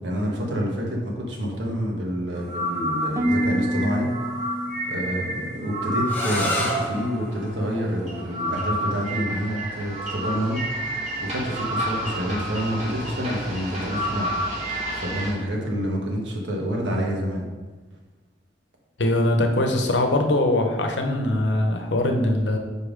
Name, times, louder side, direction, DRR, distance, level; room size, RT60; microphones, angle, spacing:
voice 1, 0.0-4.2 4.9-10.7 11.2-14.3 14.9-17.4, equal, 80° right, -1 dB, 1.3 m, -28 dB
sound 1, 2.3-15.3, right 1 dB, 40° right, 1.7 m, -30 dB
Harp, 3.2-7.3 7.6-8.1 8.6-8.9, equal, 15° right, 0.5 m, -30 dB
sound 2, 6.0-11.8, equal, 10° left, 1.3 m, -33 dB
voice 2, 19.0-22.6, left 1 dB, 75° left, 4 dB, 0.9 m, -22 dB
5.3 x 4.4 x 5.1 m, 1.3 s
head